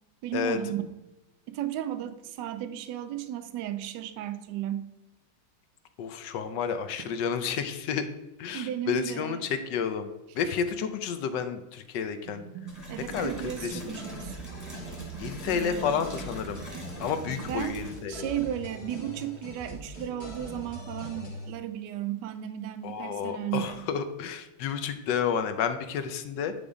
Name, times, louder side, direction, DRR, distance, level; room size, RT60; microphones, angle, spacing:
voice 1, 0.2-0.8 1.5-4.9 8.5-9.5 12.9-14.4 15.5-16.0 17.4-17.8 18.1-23.9, right 11 dB, 75° right, 11 dB, 1.0 m, -34 dB
voice 2, 6.0-8.1 8.4-10.1 10.3-12.4 13.1-13.3 13.6-14.0 15.2-16.7 17.0-18.3 22.8-26.5, left 7 dB, 70° left, 9 dB, 1.2 m, -30 dB
sound 1, 12.3-17.5, right 7 dB, 90° right, 1.7 m, -44 dB
sound 2, 12.7-18.1, right 1 dB, 10° right, 1.2 m, -45 dB
sound 3, 13.2-21.5, left 1 dB, 50° left, 1.9 m, -42 dB
9.6 x 3.5 x 4.9 m, 1.0 s
omnidirectional pair, 2.3 m